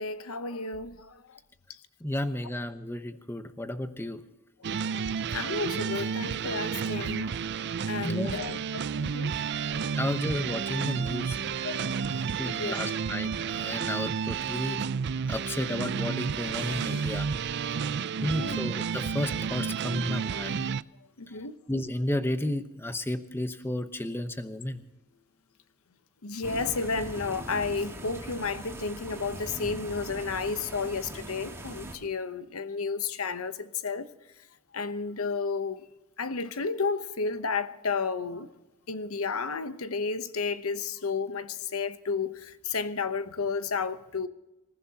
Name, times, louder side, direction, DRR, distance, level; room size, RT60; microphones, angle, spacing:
voice 1, 0.0-1.4 4.7-4.8 5.3-7.5 7.9-9.6 11.6-12.8 16.6-16.7 18.3-18.6 21.2-21.5 26.2-34.1 34.7-35.8 36.2-38.5 38.9-44.3, left 4 dB, 70° left, 0.9 m, -32 dB
voice 2, 2.0-4.2 8.0-8.4 10.0-11.4 12.4-14.8 15.3-17.3 18.2-20.7 21.7-24.8, left 1 dB, 10° left, 1.0 m, -32 dB
sound 1, 4.6-20.8, right 6 dB, 50° right, 0.4 m, -31 dB
sound 2, 9.7-12.2 12.5-15.1 15.4-18.2 19.0-19.3, left 2 dB, 40° left, 0.9 m, -51 dB
sound 3, 26.4-32.0, right 1 dB, 10° right, 2.7 m, -41 dB
26.0 x 15.0 x 2.9 m
head